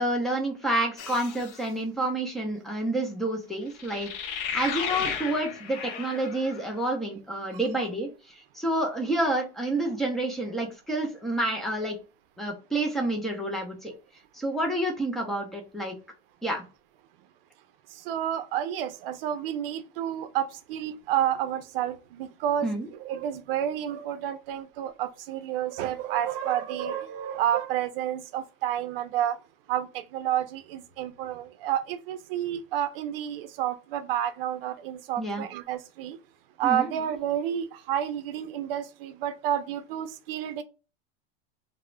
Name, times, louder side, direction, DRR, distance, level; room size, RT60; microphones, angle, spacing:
voice 1, 0.0-12.0 12.4-13.9 14.3-15.9 16.4-16.6 22.6-22.9 35.2-35.4 36.6-36.9, right 1 dB, ahead, 0.3 m, -29 dB
sound 1, 1.0-1.7 3.7-6.7, left 7 dB, 60° left, 0.6 m, -34 dB
voice 2, 18.0-22.7 23.0-29.4 29.7-36.2 36.6-40.6, right 10 dB, 70° right, 0.5 m, -30 dB
2.3 x 2.0 x 3.0 m
supercardioid pair, 150°, 30 cm